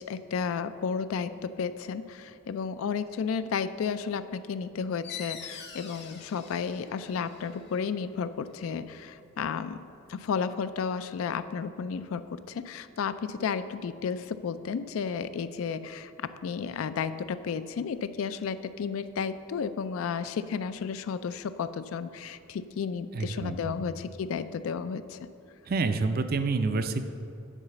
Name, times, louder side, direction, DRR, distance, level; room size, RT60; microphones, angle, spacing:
voice 1, 0.0-9.8 10.1-25.2, left 6 dB, 75° left, 13 dB, 0.3 m, -33 dB
sound 1, 5.0-10.3, left 7 dB, 55° left, 1.0 m, -46 dB
voice 2, 23.1-23.8 25.7-27.1, right 3 dB, 45° right, 9 dB, 0.4 m, -28 dB
10.0 x 4.0 x 6.8 m, 2.5 s
head